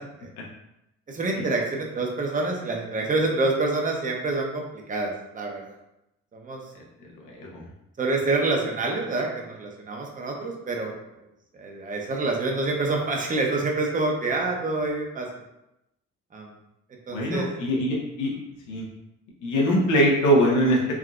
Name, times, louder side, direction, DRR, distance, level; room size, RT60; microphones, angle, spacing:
voice 1, 1.1-5.7 6.3-6.6 8.0-10.9 11.5-15.3 16.3-16.5 17.1-17.5, right 3 dB, 25° right, 0 dB, 0.7 m, -27 dB
voice 2, 17.1-18.3 18.7-18.8 19.4-20.9, equal, 80° left, -3 dB, 1.0 m, -22 dB
3.6 x 2.6 x 2.4 m, 0.86 s
cardioid pair, 90°, 30 cm